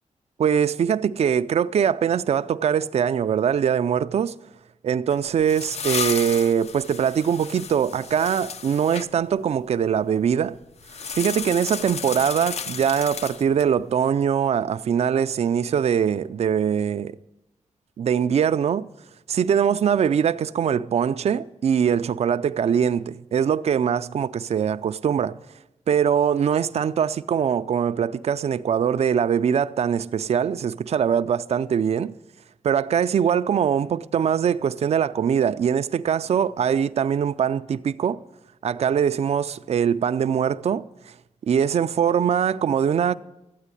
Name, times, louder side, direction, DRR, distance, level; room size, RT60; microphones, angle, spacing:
voice 1, 0.4-4.3 4.8-10.6 11.1-17.2 18.0-18.9 19.3-25.4 25.9-32.1 32.6-38.2 38.6-40.9 41.5-43.1, right 8 dB, 55° right, 0.4 m, -22 dB
sound 1, 5.1-9.1 10.8-13.7, left 6 dB, 60° left, 0.6 m, -33 dB
12.5 x 9.0 x 9.8 m
wide cardioid pair, 135°, 13 cm